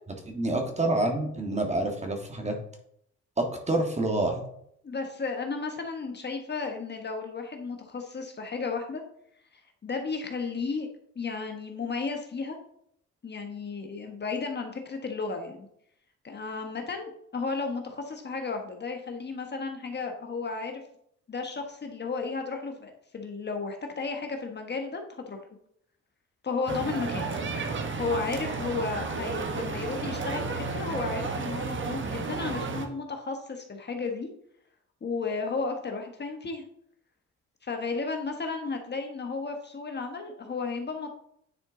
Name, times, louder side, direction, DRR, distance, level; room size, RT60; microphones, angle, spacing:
voice 1, 0.3-2.6 3.4-4.4, right 2 dB, 20° right, 3 dB, 1.7 m, -27 dB
voice 2, 4.8-9.0 9.8-10.9 11.1-12.6 13.2-15.7 16.2-20.8 21.3-25.4 26.4-27.3 27.9-34.3 35.0-36.6 37.6-41.2, left 4 dB, 35° left, 4 dB, 1.2 m, -33 dB
sound 1, 26.7-32.9, right 4 dB, 40° right, 1.2 m, -32 dB
9.7 x 4.4 x 3.8 m, 0.70 s
cardioid pair, 90°, 30 cm